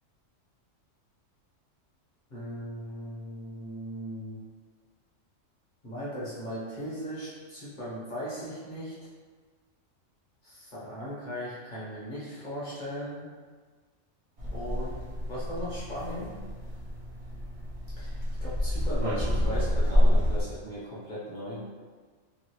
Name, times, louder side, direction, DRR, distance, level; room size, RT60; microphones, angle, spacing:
voice 1, 2.3-4.4 5.8-9.0 10.4-13.3 14.5-15.0 15.3-16.3 18.0-21.6, equal, 40° left, -8 dB, 0.9 m, -38 dB
sound 1, 14.4-20.4, left 1 dB, 40° right, 0.6 m, -28 dB
3.0 x 2.5 x 2.9 m, 1.5 s
omnidirectional pair, 1.3 m